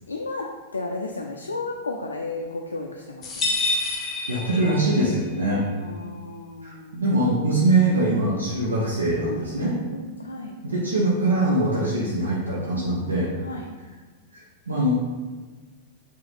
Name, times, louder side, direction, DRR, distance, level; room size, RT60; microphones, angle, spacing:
voice 1, 0.1-3.6 5.8-7.0 9.2-10.6 13.4-13.7, left 3 dB, 90° left, 1 dB, 0.3 m, -34 dB
sound 1, 3.2-5.2, left 2 dB, 30° left, 0.8 m, -27 dB
voice 2, 4.3-5.6 6.6-9.7 10.6-13.3 14.3-14.9, right 2 dB, 85° right, -6 dB, 0.7 m, -23 dB
4.7 x 2.4 x 3.3 m, 1.4 s
hypercardioid pair, 100°, 0 cm